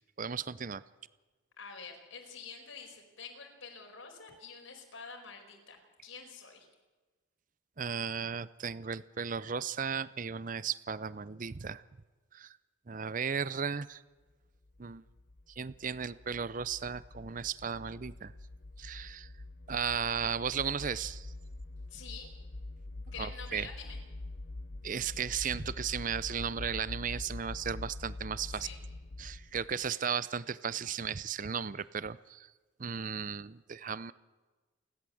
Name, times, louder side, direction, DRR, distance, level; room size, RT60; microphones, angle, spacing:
voice 1, 0.2-0.8 7.8-11.8 12.3-12.6 12.9-14.0 14.8-15.0 15.6-18.3 18.8-19.3 19.7-21.3 23.2-23.7 24.8-28.7 29.2-32.5 32.8-34.1, right 7 dB, 40° right, 18 dB, 0.5 m, -35 dB
voice 2, 1.6-6.7 21.9-22.3 23.1-24.0 28.5-28.8, left 5 dB, 70° left, 2 dB, 4.9 m, -47 dB
sound 1, 14.6-29.9, left 2 dB, 50° left, 0.8 m, -45 dB
29.0 x 12.0 x 7.8 m, 1.3 s
head